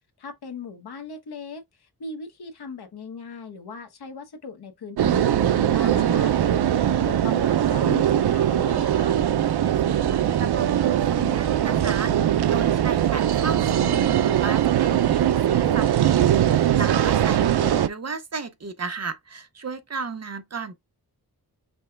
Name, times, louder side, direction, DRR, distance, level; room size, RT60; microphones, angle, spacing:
voice 1, 0.2-9.2, left 5 dB, 75° left, 1.0 m, -39 dB
sound 1, 5.0-17.9, right 10 dB, 85° right, 0.5 m, -21 dB
voice 2, 9.9-12.1 12.5-20.8, right 4 dB, 40° right, 0.7 m, -34 dB
5.4 x 2.2 x 3.3 m
wide cardioid pair, 100°, 38 cm